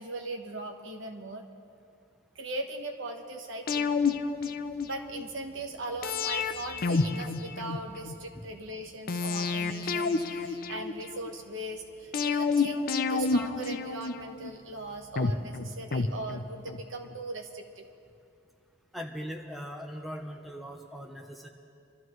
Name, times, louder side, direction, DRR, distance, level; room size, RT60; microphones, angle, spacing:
voice 1, 0.0-1.4 2.3-3.9 4.9-17.9, right 2 dB, 60° right, 4 dB, 1.2 m, -39 dB
sound 1, 3.7-5.2 6.0-8.2 9.1-11.3 12.1-14.5 15.2-16.8 17.1-17.2, left 4 dB, 45° left, 0.5 m, -30 dB
voice 2, 18.9-21.5, equal, ahead, 1 dB, 0.8 m, -40 dB
26.5 x 13.0 x 3.1 m, 2.5 s
head